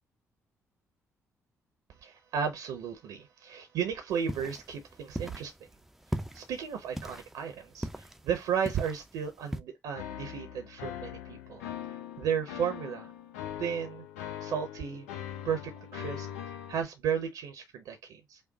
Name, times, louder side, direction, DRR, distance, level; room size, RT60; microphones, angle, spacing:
voice 1, 2.0-5.5 6.3-11.6 12.2-13.1 13.6-14.0 14.4-15.1 15.4-16.3 16.7-18.4, right 7 dB, 60° right, 0.7 m, -34 dB
sound 1, 4.1-9.6, equal, 5° right, 0.5 m, -40 dB
sound 2, 10.0-16.8, left 10 dB, 70° left, 0.8 m, -41 dB
5.3 x 2.2 x 3.9 m
figure-of-eight pair, 40°, 7 cm